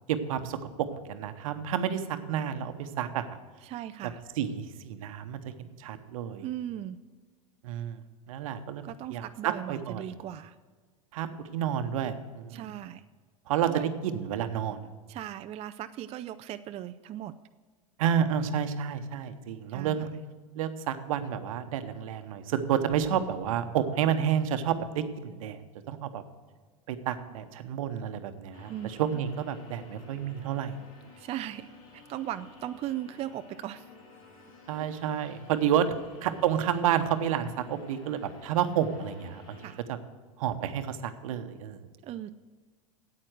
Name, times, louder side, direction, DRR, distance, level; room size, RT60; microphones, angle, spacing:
voice 1, 0.1-0.6 0.9-3.4 4.4-6.5 7.6-8.0 8.3-8.8 9.1-10.1 11.1-12.7 13.5-14.9 18.0-20.1 20.5-25.6 25.9-26.2 26.9-30.8 34.7-35.9 36.2-39.6 39.9-40.0 40.4-41.8, right 9 dB, 75° right, 9 dB, 1.0 m, -30 dB
voice 2, 3.6-4.2 6.4-7.0 8.8-10.6 12.5-13.0 13.7-13.9 15.1-17.3 19.7-20.1 28.7-29.0 31.1-33.9 34.7-34.9 35.3-35.4 39.6-39.8 42.0-42.3, right 12 dB, 35° right, 10 dB, 0.4 m, -38 dB
sound 1, 28.5-39.8, left 3 dB, 75° left, 2.4 m, -53 dB
9.0 x 8.5 x 6.4 m, 1.5 s
hypercardioid pair, 90°, 18 cm